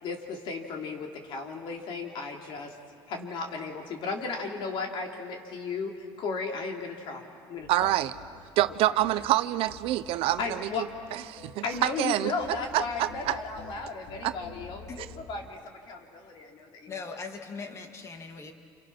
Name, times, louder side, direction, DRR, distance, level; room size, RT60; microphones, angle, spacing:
voice 1, 0.0-2.7 3.1-7.9 8.9-9.0 10.4-10.9 11.6-16.9, left 4 dB, 55° left, 2 dB, 3.0 m, -35 dB
sound 1, 7.6-15.5, left 4 dB, 90° left, 3.1 m, -48 dB
voice 2, 7.7-8.1 8.6-10.7 11.1-12.3 12.7-13.4 14.2-14.3, right 15 dB, 70° right, 13 dB, 0.8 m, -26 dB
voice 3, 16.9-18.5, left 4 dB, 30° left, 5 dB, 2.0 m, -40 dB
29.5 x 28.0 x 6.0 m, 2.3 s
cardioid pair, 150°, 10 cm